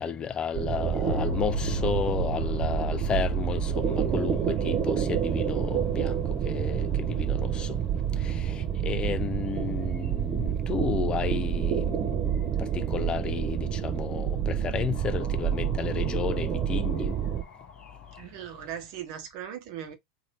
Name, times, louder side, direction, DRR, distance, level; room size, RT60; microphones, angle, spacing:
voice 1, 0.0-7.8 8.2-17.1, left 7 dB, 30° left, 0.5 m, -32 dB
sound 1, 0.5-17.4, right 9 dB, 40° right, 0.6 m, -28 dB
sound 2, 1.1-18.2, left 3 dB, 75° left, 1.2 m, -42 dB
voice 2, 18.2-19.9, right 10 dB, 60° right, 1.0 m, -38 dB
3.1 x 2.8 x 2.9 m
hypercardioid pair, 90°, 3 cm